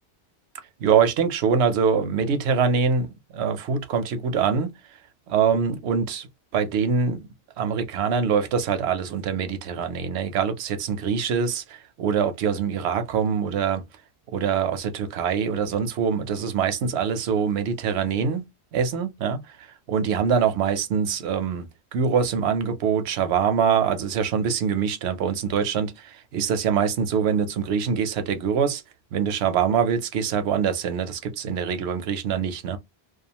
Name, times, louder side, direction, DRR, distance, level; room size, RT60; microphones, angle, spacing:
voice 1, 0.8-4.7 5.3-6.3 6.5-7.3 7.6-13.8 14.3-28.8 29.1-32.8, right 6 dB, 85° right, 0.9 m, -24 dB
2.4 x 2.4 x 2.8 m
omnidirectional pair, 1.1 m